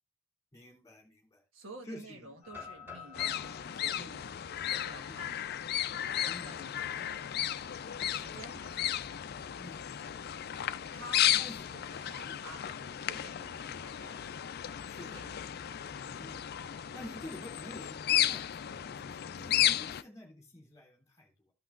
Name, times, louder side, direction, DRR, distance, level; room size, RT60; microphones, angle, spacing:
voice 1, 0.5-1.4 1.8-2.3 4.0-4.1 5.1-5.2 6.3-6.5 9.6-9.8 11.3-11.6 12.2-12.4 14.9-15.2 16.2-16.4 16.9-21.5, left 1 dB, 15° left, 2.8 m, -48 dB
voice 2, 1.5-4.3 4.6-5.6 6.0-7.3 7.8-9.1 10.9-14.3 14.5-15.6, right 2 dB, 70° right, 1.5 m, -52 dB
sound 1, 2.4-6.3 6.8-6.9 7.4-7.7 9.0-9.8, left 5 dB, 10° right, 3.4 m, -51 dB
sound 2, 3.1-20.0, left 11 dB, 50° left, 0.4 m, -34 dB
14.5 x 5.9 x 2.4 m
head